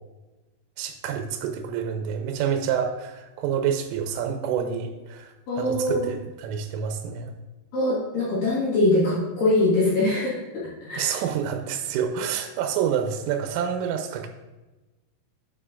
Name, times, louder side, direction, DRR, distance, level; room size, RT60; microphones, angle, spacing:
voice 1, 0.8-7.3 11.0-14.3, right 8 dB, 90° right, 5 dB, 3.2 m, -28 dB
voice 2, 5.5-6.1 7.7-11.1, left 2 dB, 60° left, -8 dB, 2.7 m, -23 dB
12.0 x 5.0 x 2.5 m, 1.1 s
omnidirectional pair, 5.8 m